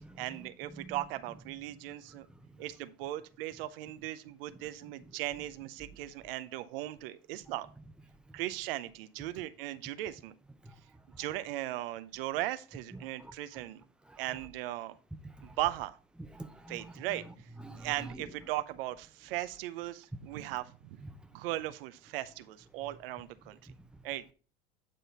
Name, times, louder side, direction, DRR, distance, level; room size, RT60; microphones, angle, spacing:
voice 1, 0.2-2.3 2.6-7.7 8.3-10.3 11.2-13.8 14.2-15.0 15.6-16.0 16.7-17.2 17.8-21.0 21.3-23.6 24.0-24.2, right 15 dB, 75° right, 0.6 m, -38 dB
voice 2, 1.9-2.6 10.6-10.8 12.9-13.7 14.1-14.2 15.2-15.6 16.2-17.3 17.6-18.2 21.0-21.2 23.7-23.9, right 2 dB, 5° right, 0.8 m, -48 dB
9.2 x 3.8 x 4.1 m
hypercardioid pair, 90°, 29 cm